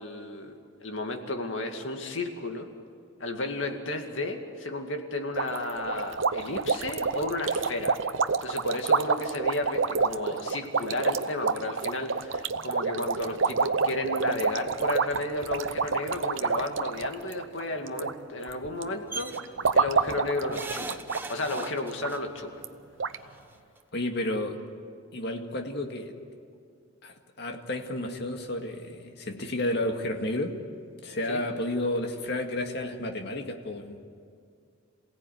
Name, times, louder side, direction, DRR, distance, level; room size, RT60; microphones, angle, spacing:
voice 1, 0.0-2.7 3.2-8.0 8.4-21.0 21.3-22.6 31.3-31.4, left 2 dB, 75° left, 4 dB, 2.3 m, -33 dB
sound 1, 5.4-18.1 18.4-18.8 19.3-21.3 21.5-21.6 22.0-22.1 22.6-22.7 23.0-23.2, right 4 dB, 75° right, 0.8 m, -28 dB
sound 2, 19.1-19.4 20.5-22.2 23.4-23.5 23.8-23.9, right 3 dB, 10° right, 0.9 m, -38 dB
voice 2, 23.9-24.6 25.1-26.1 27.0-30.6 31.0-34.0, left 1 dB, 55° left, 4 dB, 2.1 m, -31 dB
27.5 x 17.0 x 9.4 m, 2.3 s
head